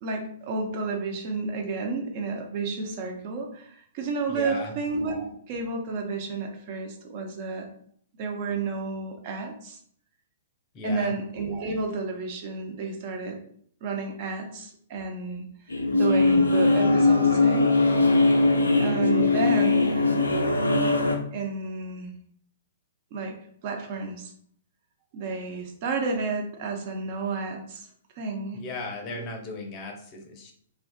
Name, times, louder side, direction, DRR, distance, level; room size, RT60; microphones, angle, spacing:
voice 1, 0.0-7.7 8.2-9.8 10.8-13.4 13.8-15.4 15.9-17.8 18.8-20.4 21.3-22.1 23.1-23.3 23.6-24.3 25.1-27.9 28.2-28.6 29.0-29.3, right 4 dB, 45° right, 3 dB, 0.5 m, -31 dB
voice 2, 4.3-4.7 10.7-11.1 19.1-19.4 28.5-30.5, left 3 dB, 35° left, 2 dB, 0.5 m, -37 dB
sound 1, 15.7-21.2, left 3 dB, 85° left, 0.3 m, -21 dB
2.4 x 2.4 x 2.2 m, 0.62 s
figure-of-eight pair, 115°, 0 cm